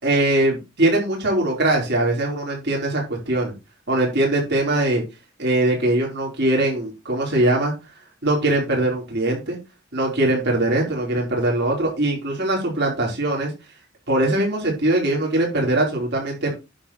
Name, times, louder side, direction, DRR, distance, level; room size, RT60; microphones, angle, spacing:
voice 1, 0.0-3.5 3.9-5.0 5.4-7.7 8.2-9.6 9.9-13.5 14.1-16.5, right 1 dB, 60° right, -1 dB, 4.7 m, -21 dB
10.0 x 6.7 x 4.5 m, 0.26 s
head